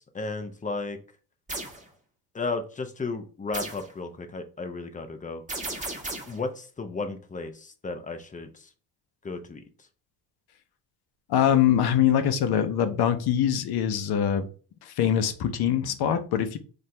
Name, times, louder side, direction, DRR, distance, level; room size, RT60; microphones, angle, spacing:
voice 1, 0.1-1.0 2.3-5.4 6.3-8.7 9.2-9.6, left 3 dB, 20° left, 7 dB, 0.6 m, -34 dB
sound 1, 1.5-1.8 3.5-3.9 5.5-6.4, right 2 dB, 20° right, 1.3 m, -34 dB
voice 2, 11.3-14.5 14.8-16.6, left 9 dB, 65° left, 9 dB, 0.7 m, -23 dB
4.3 x 2.6 x 3.2 m, 0.39 s
cardioid pair, 100°, 41 cm